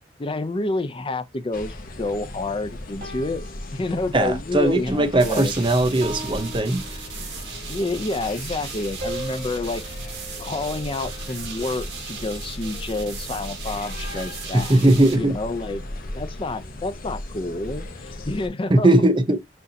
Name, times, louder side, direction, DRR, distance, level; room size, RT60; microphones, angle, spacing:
voice 1, 0.2-3.4 3.7-5.5 7.7-9.8 10.4-14.8 15.1-15.8 16.1-18.9, left 2 dB, 30° left, 0.5 m, -29 dB
sound 1, 1.5-18.5, left 1 dB, 55° left, 0.9 m, -37 dB
sound 2, 3.0-4.6 5.0-5.3 6.0-7.7 9.0-11.4, right 1 dB, 45° right, 2.7 m, -39 dB
voice 2, 4.1-7.0 14.1-14.2 14.5-15.4 18.7-19.4, right 1 dB, 30° right, 0.6 m, -19 dB
sound 3, 5.2-15.2, right 6 dB, 75° right, 1.6 m, -38 dB
6.3 x 2.7 x 2.7 m
head